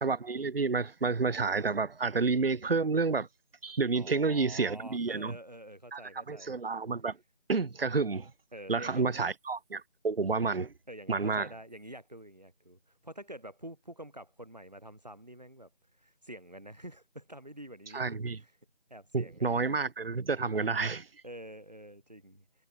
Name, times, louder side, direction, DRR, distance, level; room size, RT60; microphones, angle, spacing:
voice 1, 0.0-3.3 3.6-5.3 5.9-6.0 6.3-7.2 7.5-8.3 8.7-10.7 11.1-11.5 17.9-18.4 19.1-21.1, right 4 dB, 60° right, 0.6 m, -30 dB
voice 2, 3.9-6.6 8.5-9.2 10.9-15.7 16.0-18.5 18.9-19.7 21.2-22.4, right 1 dB, 40° right, 1.4 m, -47 dB
figure-of-eight pair, 175°, 33 cm